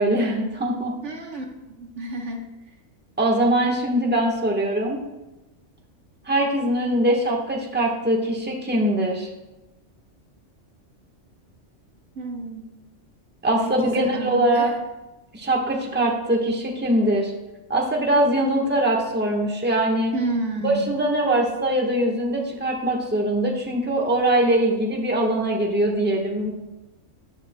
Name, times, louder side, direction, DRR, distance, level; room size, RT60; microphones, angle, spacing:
voice 1, 0.0-0.9 3.2-5.0 6.3-9.3 13.4-14.7 15.3-17.3 17.7-20.1 20.6-26.5, right 1 dB, 10° right, -1 dB, 1.2 m, -22 dB
voice 2, 1.0-2.5 12.1-12.6 13.6-14.7 20.1-20.8, right 2 dB, 65° right, 1 dB, 1.5 m, -30 dB
13.0 x 9.9 x 2.2 m, 1.0 s
omnidirectional pair, 1.3 m